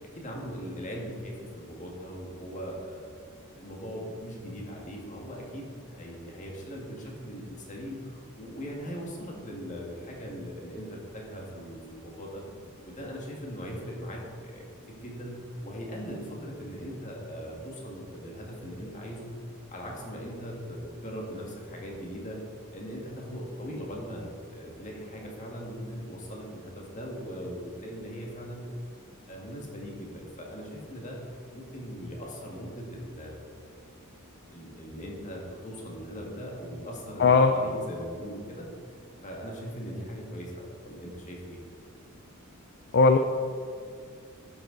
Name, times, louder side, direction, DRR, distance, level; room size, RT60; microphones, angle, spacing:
voice 1, 0.0-3.2 3.6-12.4 12.8-19.4 19.7-22.4 22.7-28.7 29.3-31.2 31.5-33.7 34.5-38.7 39.2-41.6, equal, 35° left, -1 dB, 1.9 m, -40 dB
voice 2, 37.2-37.5 42.9-43.2, left 4 dB, 50° left, 6 dB, 0.4 m, -18 dB
11.0 x 8.1 x 3.9 m, 2.2 s
head